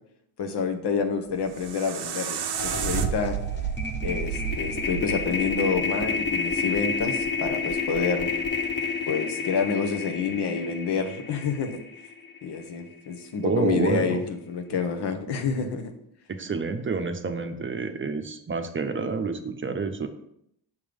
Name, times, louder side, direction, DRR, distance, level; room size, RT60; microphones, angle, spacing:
voice 1, 0.4-3.4 4.0-8.3 9.1-11.8 12.4-15.9, left 5 dB, 75° left, 5 dB, 1.0 m, -28 dB
sound 1, 1.3-6.4, right 8 dB, 85° right, 0.7 m, -31 dB
sound 2, 2.0-2.2 2.5-12.8, left 4 dB, 25° left, 0.9 m, -30 dB
voice 2, 13.4-14.2 16.3-20.1, right 4 dB, 30° right, 7 dB, 0.6 m, -28 dB
6.4 x 3.6 x 5.1 m, 0.75 s
cardioid pair, 90°, 40 cm